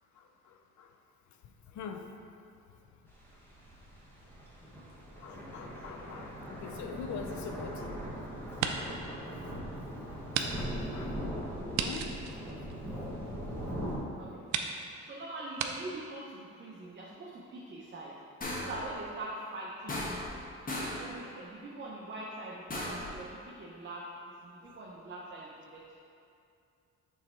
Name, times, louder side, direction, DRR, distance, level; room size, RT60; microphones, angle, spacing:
voice 1, 0.1-1.0 1.3-2.1 2.6-3.0 4.9-8.0 8.6-12.6 12.9-13.1 20.9-21.1 24.6-24.8, left 6 dB, 70° left, 5 dB, 0.6 m, -46 dB
sound 1, 3.1-14.0, equal, 5° left, 1.3 m, -40 dB
sound 2, 7.1-8.1 8.4-9.1 9.5-9.6 10.3-10.5 10.8-10.9 11.7-13.3 14.0-14.1 14.5-14.7 15.6-15.7, right 8 dB, 75° right, 0.5 m, -35 dB
voice 2, 14.0-14.6 15.0-18.1 18.6-20.0 21.0-24.1 24.4-26.0, right 2 dB, 40° right, -4 dB, 0.8 m, -43 dB
sound 3, 18.4-18.9 19.9-20.4 20.7-21.1 22.7-23.1, left 1 dB, 30° left, 1.2 m, -36 dB
6.4 x 3.3 x 4.4 m, 2.5 s
cardioid pair, 90°, 30 cm